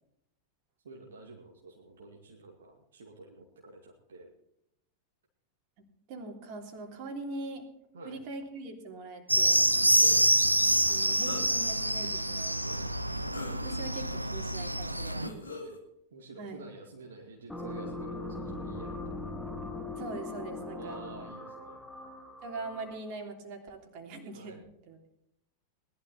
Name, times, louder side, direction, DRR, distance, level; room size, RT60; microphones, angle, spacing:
voice 1, 0.8-4.3 7.9-8.2 10.0-10.3 12.6-12.9 14.8-15.8 16.1-19.3 20.7-21.8 24.3-24.7, right 2 dB, 65° right, 0 dB, 2.2 m, -48 dB
voice 2, 6.1-7.6 8.0-9.7 10.9-12.6 13.6-15.3 16.4-16.6 20.0-21.0 22.4-25.0, right 3 dB, 45° right, 3 dB, 3.2 m, -42 dB
sound 1, 9.3-15.3, right 1 dB, 90° right, 0.7 m, -26 dB
sound 2, 11.2-11.8 12.4-12.5 13.3-14.1 15.2-15.8, left 2 dB, 80° left, 2.6 m, -41 dB
sound 3, 17.5-23.1, left 2 dB, 5° left, 1.9 m, -40 dB
19.5 x 12.0 x 4.2 m, 0.77 s
figure-of-eight pair, 90°, 0 cm